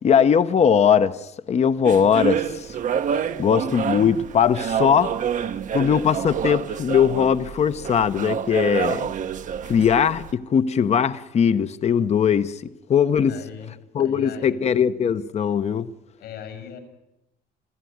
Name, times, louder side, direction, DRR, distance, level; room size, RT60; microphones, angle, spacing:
voice 1, 0.0-2.7 3.4-5.1 5.7-9.1 9.7-12.6 12.9-13.3 13.9-15.9, left 7 dB, 40° left, 0.9 m, -20 dB
sound 1, 1.8-10.3, right 8 dB, 50° right, 0.9 m, -28 dB
voice 2, 13.3-13.7 14.0-14.6 16.2-16.8, left 8 dB, 80° left, 6.9 m, -39 dB
26.5 x 15.0 x 9.5 m
cardioid pair, 110°, 17 cm